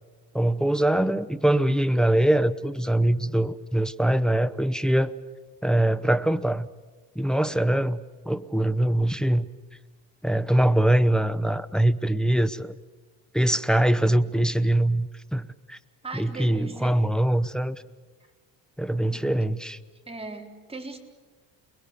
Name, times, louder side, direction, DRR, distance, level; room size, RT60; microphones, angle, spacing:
voice 1, 0.3-5.1 5.6-6.7 7.2-9.5 10.2-12.7 13.3-15.8 16.1-17.8 18.8-19.8, right 1 dB, ahead, 11 dB, 0.8 m, -23 dB
voice 2, 16.0-17.0 19.1-19.3 20.1-21.0, right 3 dB, 15° right, 2 dB, 3.8 m, -39 dB
29.0 x 21.0 x 6.9 m, 1.4 s
cardioid pair, 120°, 40 cm